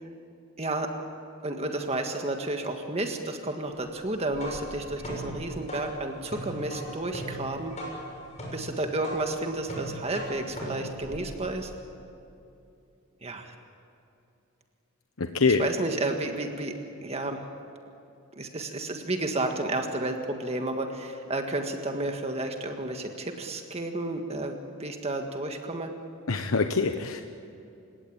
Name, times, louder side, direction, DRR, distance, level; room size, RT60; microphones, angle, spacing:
voice 1, 0.6-0.9 1.4-7.7 8.5-11.7 13.2-13.5 15.4-16.7 17.0-17.5 18.3-25.9, right 2 dB, 30° right, 4 dB, 1.7 m, -31 dB
sound 1, 4.1-11.8, equal, 35° left, 6.5 m, -39 dB
voice 2, 15.2-15.6 26.3-27.2, left 4 dB, 80° left, 6 dB, 1.1 m, -24 dB
29.5 x 17.0 x 8.8 m, 2.7 s
head